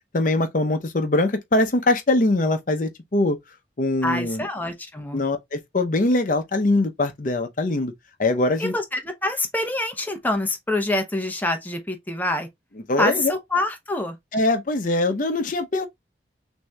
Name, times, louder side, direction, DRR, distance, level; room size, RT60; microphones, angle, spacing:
voice 1, 0.1-3.4 3.8-4.5 5.1-7.9 8.2-8.7 12.9-13.3 14.3-15.9, left 2 dB, 45° left, 0.6 m, -22 dB
voice 2, 4.0-5.2 8.6-12.5 13.0-14.2, left 2 dB, 10° left, 0.7 m, -26 dB
6.0 x 2.7 x 2.2 m
head